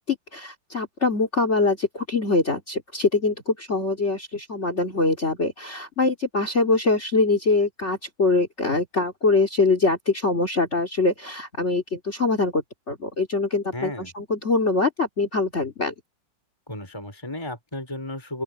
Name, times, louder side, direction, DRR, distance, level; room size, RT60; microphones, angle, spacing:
voice 1, 0.0-15.9, left 3 dB, 35° left, 3.2 m, -23 dB
voice 2, 13.7-14.1 16.7-18.4, left 1 dB, 15° left, 5.2 m, -34 dB
open air
omnidirectional pair, 2.1 m